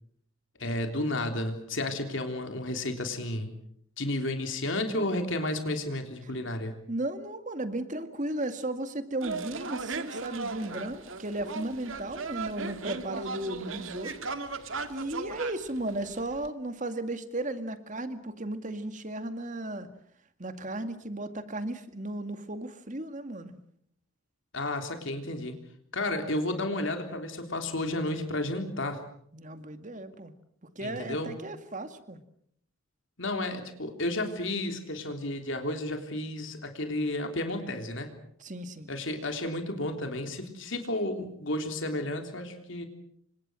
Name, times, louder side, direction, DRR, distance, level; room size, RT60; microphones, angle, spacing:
voice 1, 0.6-3.5 4.0-6.8 24.5-25.6 25.9-29.0 30.8-31.4 33.2-38.1 38.9-42.9, left 1 dB, 60° left, 5 dB, 3.5 m, -32 dB
voice 2, 6.9-14.1 14.9-19.9 20.4-23.6 29.3-30.3 30.8-32.2 38.4-38.9, right 1 dB, 35° right, 9 dB, 2.1 m, -35 dB
sound 1, 9.2-16.5, right 4 dB, 70° right, 2.2 m, -37 dB
29.0 x 25.5 x 6.3 m, 0.67 s
head